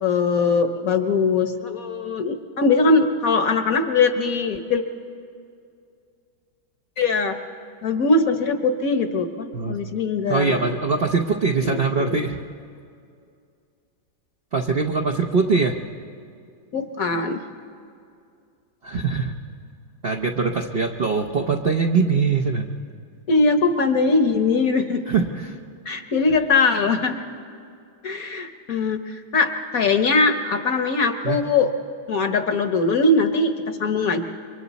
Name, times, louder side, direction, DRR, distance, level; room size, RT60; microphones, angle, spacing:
voice 1, 0.0-4.8 7.0-7.4 7.8-10.6 11.6-12.2 16.7-17.4 23.3-25.0 25.9-27.2 28.0-31.7 32.1-34.2, left 3 dB, 55° left, 7 dB, 1.2 m, -21 dB
voice 2, 10.3-12.4 14.5-15.8 18.8-19.3 20.0-22.7 25.1-25.5 31.2-31.4, right 4 dB, 55° right, 2 dB, 0.6 m, -22 dB
28.5 x 24.0 x 4.1 m, 2.4 s
omnidirectional pair, 2.1 m